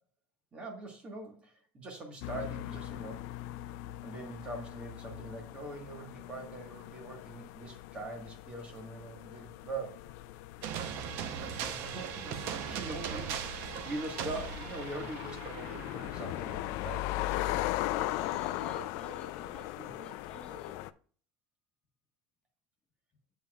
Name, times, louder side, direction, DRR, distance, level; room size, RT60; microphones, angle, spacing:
voice 1, 0.5-3.3 4.0-10.1 11.5-12.4 12.7-17.3 17.6-17.7 19.7-19.9, right 2 dB, 20° right, 3 dB, 1.5 m, -43 dB
sound 1, 2.2-20.9, left 16 dB, 60° left, 0.4 m, -39 dB
sound 2, 10.6-17.2, right 8 dB, 55° right, 0.8 m, -39 dB
voice 2, 17.8-20.9, left 2 dB, 20° left, 2 dB, 1.4 m, -48 dB
8.1 x 7.2 x 2.4 m, 0.44 s
cardioid pair, 155°, 5 cm